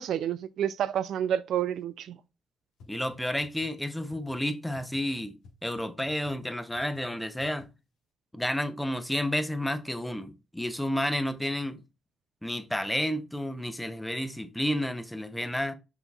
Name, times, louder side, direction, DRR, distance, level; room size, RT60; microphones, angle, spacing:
voice 1, 0.0-2.2, right 10 dB, 75° right, 0.3 m, -29 dB
sound 1, 2.8-2.9 3.1-3.2 3.4-3.7 4.1-4.3 4.7-5.0 5.4-5.5 5.8-5.9 6.1-6.3 6.7-7.0 7.4-7.6, left 5 dB, 85° left, 1.3 m, -51 dB
voice 2, 2.9-5.3 5.6-7.7 8.3-11.8 12.4-15.7, left 1 dB, 5° left, 0.6 m, -31 dB
5.7 x 4.0 x 2.3 m
cardioid pair, 90°, 0 cm